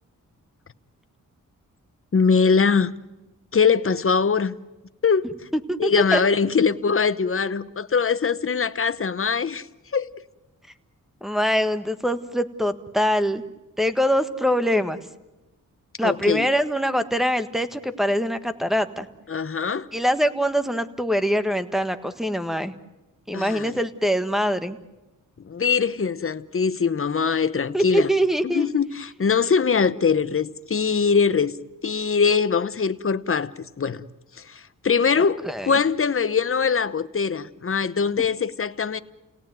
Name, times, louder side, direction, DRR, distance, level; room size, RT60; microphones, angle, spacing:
voice 1, 2.1-2.9 3.5-4.5 5.0-5.3 5.8-9.7 9.9-10.1 16.0-16.5 19.3-19.9 23.3-23.8 25.4-28.1 28.4-31.5 31.8-33.5 33.8-34.0 34.4-39.0, left 5 dB, 40° left, 1.0 m, -22 dB
voice 2, 5.7-6.2 11.2-13.4 13.8-15.1 16.0-19.1 19.9-22.8 23.3-24.8 27.7-28.7 35.2-35.7, equal, ahead, 1.5 m, -23 dB
30.0 x 18.0 x 9.2 m
cardioid pair, 80°, 33 cm